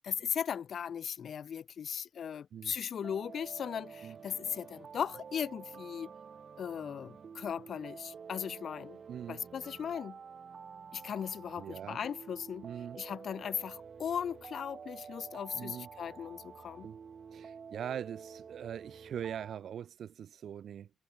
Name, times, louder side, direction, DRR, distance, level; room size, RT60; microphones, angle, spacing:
voice 1, 0.0-6.1 6.6-9.0 9.3-10.2 10.9-12.7 13.0-16.9, left 8 dB, 55° left, 0.7 m, -38 dB
sound 1, 3.0-19.6, right 6 dB, 45° right, 4.5 m, -49 dB
voice 2, 9.1-9.5 11.6-12.0 12.6-13.0 15.5-15.9 16.8-17.0 17.3-20.9, right 9 dB, 60° right, 0.9 m, -42 dB
cardioid pair, 90°, 0 cm